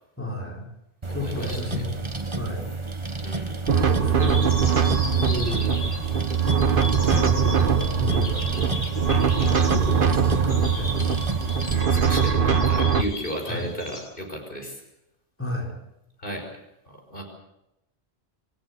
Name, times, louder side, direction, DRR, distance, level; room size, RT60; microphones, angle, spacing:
voice 1, 0.2-0.7 1.1-2.0 2.4-2.7 3.7-4.6 5.2-5.7 7.1-8.7 9.7-11.2 13.5-13.7 15.4-15.7, left 1 dB, 10° left, -1 dB, 5.0 m, -32 dB
sound 1, 1.0-11.8, right 3 dB, 30° right, 1.4 m, -31 dB
voice 2, 1.1-1.8 3.2-3.6 11.9-14.8 16.2-16.5 16.9-17.2, equal, 60° left, 3 dB, 5.8 m, -34 dB
sound 2, 3.7-13.0, right 6 dB, 60° right, 1.3 m, -22 dB
sound 3, 4.2-14.0, left 1 dB, 85° left, 7.8 m, -37 dB
25.5 x 14.5 x 8.2 m, 0.87 s
omnidirectional pair, 1.0 m